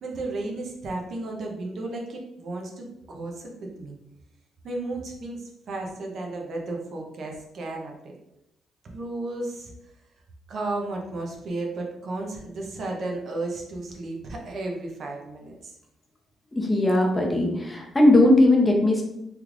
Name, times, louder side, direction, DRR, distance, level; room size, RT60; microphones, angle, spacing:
voice 1, 0.0-3.5 3.8-4.0 4.6-8.1 8.8-9.7 10.5-15.8, right 2 dB, 60° right, 0 dB, 0.7 m, -33 dB
voice 2, 16.6-19.0, left 1 dB, 15° left, 0 dB, 0.7 m, -19 dB
3.3 x 3.1 x 2.4 m, 0.85 s
cardioid pair, 90°, 0 cm